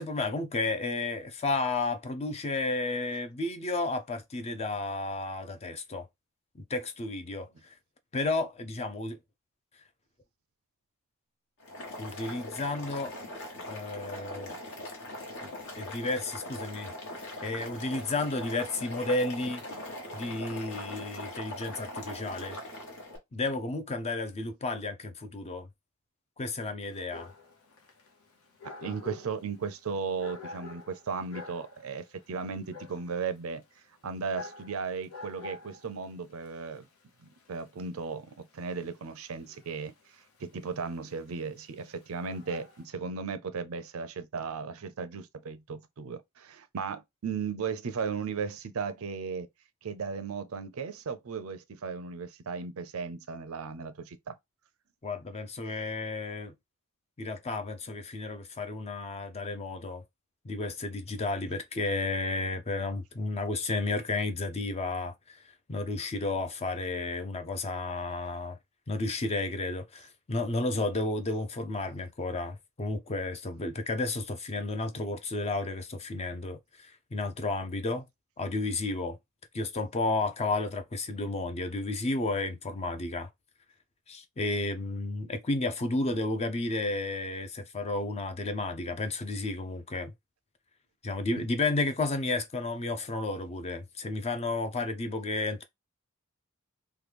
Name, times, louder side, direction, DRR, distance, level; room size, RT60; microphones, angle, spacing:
voice 1, 0.0-6.1 6.6-7.7 8.1-9.2 12.0-13.2 13.7-14.6 15.4-19.6 20.1-22.6 23.3-25.7 26.4-27.3 55.0-56.5 57.2-60.0 60.4-68.6 68.9-78.0 78.4-79.2 79.5-83.3 84.1-90.1 91.0-95.6, left 2 dB, 30° left, 0.5 m, -32 dB
Boiling, 11.6-23.2, left 1 dB, 60° left, 1.2 m, -41 dB
Dog, 26.8-42.8, left 3 dB, 80° left, 0.8 m, -49 dB
voice 2, 28.8-33.6 34.0-36.8 37.2-49.5 49.8-54.3 91.4-91.5, right 5 dB, 70° right, 0.5 m, -36 dB
3.1 x 2.2 x 3.3 m
head